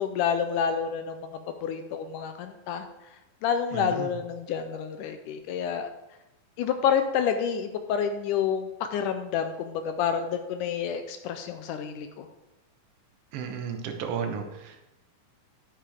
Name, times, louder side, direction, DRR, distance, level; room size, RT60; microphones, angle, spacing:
voice 1, 0.0-2.9 3.4-5.9 6.6-12.3, left 7 dB, 80° left, 7 dB, 2.1 m, -29 dB
voice 2, 3.7-4.1 13.3-14.8, right 7 dB, 80° right, 4 dB, 1.3 m, -33 dB
10.0 x 8.6 x 3.5 m, 0.95 s
omnidirectional pair, 3.8 m